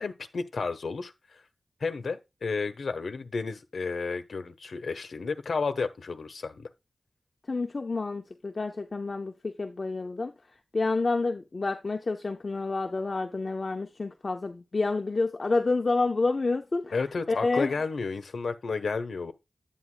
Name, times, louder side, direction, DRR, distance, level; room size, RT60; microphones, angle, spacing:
voice 1, 0.0-1.4 1.8-6.7 16.9-19.3, left 4 dB, 80° left, 1.0 m, -32 dB
voice 2, 7.5-10.3 10.7-16.9 17.3-17.7, left 3 dB, 50° left, 0.8 m, -29 dB
9.4 x 9.1 x 2.2 m
wide cardioid pair, 80°, 0 cm